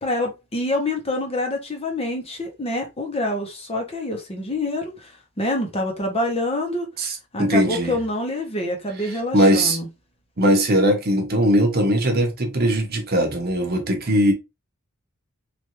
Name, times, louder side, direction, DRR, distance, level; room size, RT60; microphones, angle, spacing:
voice 1, 0.0-5.1 5.4-6.9 7.3-9.9, left 1 dB, 30° left, 0.8 m, -26 dB
voice 2, 7.0-8.0 9.3-9.8 10.4-14.3, equal, 45° right, 0.8 m, -20 dB
3.3 x 2.5 x 3.0 m
head